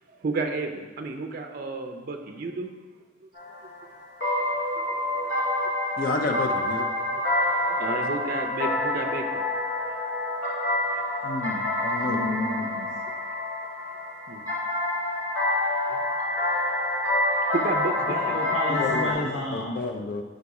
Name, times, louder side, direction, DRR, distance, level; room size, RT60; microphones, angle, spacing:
voice 1, 0.1-2.7 3.2-3.3 4.4-5.4 5.9-6.0 7.1-7.2 7.7-9.3 11.1-11.3 14.3-14.4 15.9-16.1 16.5-16.6 17.5-18.4, right 3 dB, 45° right, 4 dB, 0.4 m, -33 dB
sound 1, 3.4-19.1, left 1 dB, 65° left, 1.4 m, -27 dB
voice 2, 6.0-6.9 11.8-12.2 18.7-19.2 19.5-20.2, left 3 dB, 45° left, 5 dB, 0.4 m, -29 dB
voice 3, 11.2-11.7 12.0-12.9 18.1-19.8, left 1 dB, 85° left, -3 dB, 0.7 m, -31 dB
5.2 x 4.0 x 4.7 m, 1.3 s
head